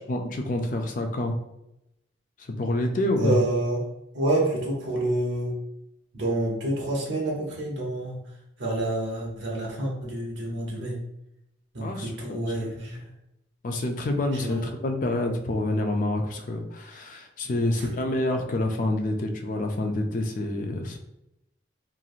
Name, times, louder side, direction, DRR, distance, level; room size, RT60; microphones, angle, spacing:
voice 1, 0.1-1.3 2.5-3.4 11.8-12.4 13.6-21.0, left 1 dB, 45° left, 4 dB, 0.3 m, -27 dB
voice 2, 3.2-3.8 4.1-5.5 6.1-8.2 8.6-11.0 11.7-13.1 14.3-14.7 17.5-17.9, right 1 dB, 75° right, -2 dB, 0.7 m, -28 dB
3.0 x 2.5 x 2.3 m, 0.85 s
head